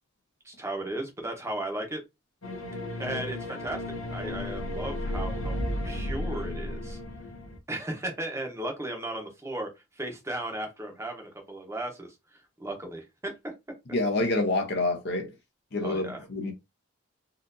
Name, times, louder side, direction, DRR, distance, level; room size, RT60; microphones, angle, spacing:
voice 1, 0.4-2.0 3.0-3.8 4.1-7.0 7.7-9.7 9.9-13.3 15.8-16.2, right 1 dB, 15° right, 0.8 m, -35 dB
sound 1, 2.4-7.6, left 1 dB, 80° left, 1.0 m, -33 dB
voice 2, 13.9-15.3 15.7-16.5, left 2 dB, 55° left, 0.8 m, -27 dB
4.2 x 2.5 x 2.6 m
head